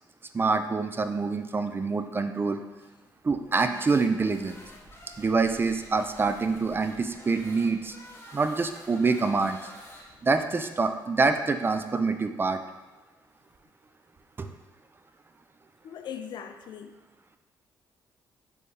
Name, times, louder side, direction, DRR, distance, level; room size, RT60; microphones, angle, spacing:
voice 1, 0.3-2.6 3.2-4.6 5.2-7.9 8.3-9.6 10.2-12.6 14.4-14.5, right 4 dB, 25° right, 8 dB, 0.3 m, -26 dB
sound 1, 3.4-10.4, equal, 30° left, 1.1 m, -49 dB
voice 2, 15.8-17.0, left 8 dB, 65° left, 7 dB, 0.4 m, -40 dB
4.3 x 3.3 x 3.2 m, 1.2 s
cardioid pair, 75°, 8 cm